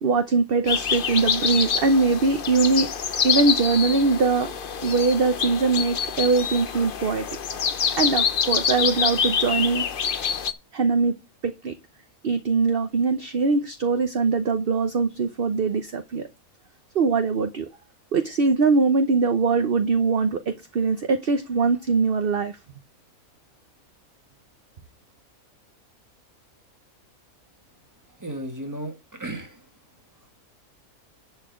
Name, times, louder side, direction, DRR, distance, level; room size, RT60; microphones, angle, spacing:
voice 1, 0.0-2.9 3.2-4.5 4.8-7.3 8.0-9.8 10.7-11.1 11.4-11.7 12.2-16.3 16.9-17.7 18.1-22.5, right 4 dB, 45° right, 0.9 m, -22 dB
sound 1, 0.7-10.5, left 7 dB, 45° left, 0.8 m, -26 dB
voice 2, 28.2-29.7, right 1 dB, 10° right, 1.6 m, -34 dB
10.5 x 4.5 x 6.2 m
omnidirectional pair, 1.5 m